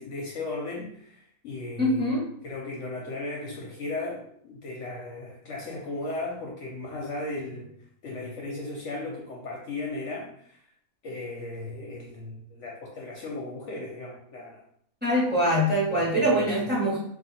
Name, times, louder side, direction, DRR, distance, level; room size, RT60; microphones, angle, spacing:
voice 1, 0.0-2.1 2.4-7.7 8.0-10.6 11.0-14.6 15.9-16.7, left 2 dB, 65° left, -2 dB, 0.9 m, -36 dB
voice 2, 1.8-2.3 15.0-17.0, equal, 5° right, -7 dB, 1.3 m, -23 dB
2.7 x 2.7 x 4.1 m, 0.67 s
omnidirectional pair, 1.5 m